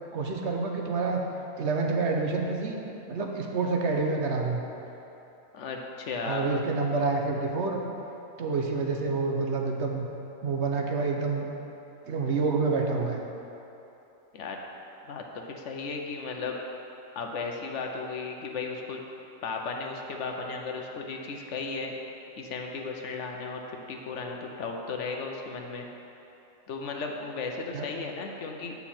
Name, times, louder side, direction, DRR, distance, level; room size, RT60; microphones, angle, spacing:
voice 1, 0.1-1.2 1.6-2.8 3.1-4.6 6.2-7.8 8.4-10.1 10.4-11.5 12.1-13.2 27.7-27.9, right 4 dB, 60° right, 1 dB, 1.0 m, -28 dB
voice 2, 5.5-6.5 14.3-14.6 15.0-16.6 17.2-19.0 19.4-21.9 22.3-23.6 23.9-25.9 26.7-28.8, left 4 dB, 65° left, 2 dB, 1.0 m, -35 dB
8.0 x 7.0 x 4.3 m, 2.9 s
omnidirectional pair, 1.4 m